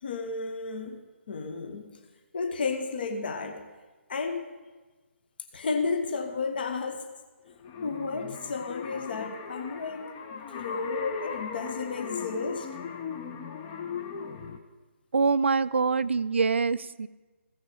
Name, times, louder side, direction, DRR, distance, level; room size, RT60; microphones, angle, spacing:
voice 1, 0.0-1.0 1.3-1.9 2.3-3.6 4.1-4.4 5.5-7.1 7.8-12.7, left 4 dB, 45° left, 6 dB, 1.1 m, -32 dB
sound 1, 7.5-14.6, left 6 dB, 20° left, 0.6 m, -38 dB
voice 2, 15.1-17.1, right 4 dB, 60° right, 17 dB, 0.4 m, -25 dB
15.5 x 6.2 x 5.1 m, 1.2 s
figure-of-eight pair, 140°, 7 cm